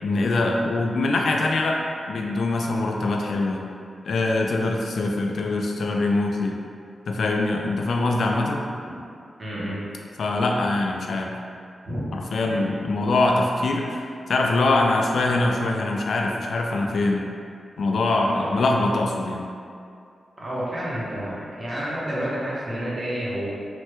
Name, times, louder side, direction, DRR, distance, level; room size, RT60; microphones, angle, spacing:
voice 1, 0.0-1.8 2.1-3.6 4.0-6.6 7.1-8.7 10.2-11.3 12.1-17.3 17.8-19.4, left 2 dB, 65° left, 1 dB, 0.3 m, -23 dB
voice 2, 9.4-9.8 11.8-12.1 12.4-12.7 18.3-18.6 20.4-23.5, equal, 35° right, -7 dB, 0.7 m, -30 dB
3.2 x 2.1 x 3.0 m, 2.4 s
wide cardioid pair, 155°, 0 cm